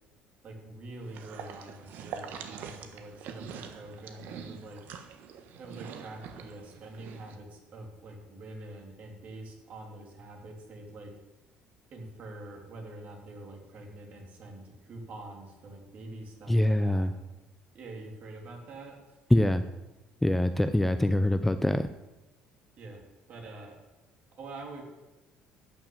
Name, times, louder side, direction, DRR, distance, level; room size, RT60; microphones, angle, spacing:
voice 1, 0.4-4.8 5.6-11.1 11.9-17.3 17.7-19.2 22.8-23.0 23.3-23.8 24.4-24.8, right 2 dB, 45° right, 2 dB, 3.1 m, -45 dB
sound 1, 1.0-7.4, right 7 dB, 65° right, 1.3 m, -44 dB
voice 2, 16.5-17.1 19.3-19.6 20.2-21.9, left 1 dB, 5° left, 10 dB, 0.5 m, -24 dB
12.0 x 6.2 x 8.7 m, 1.1 s
cardioid pair, 120°, 3 cm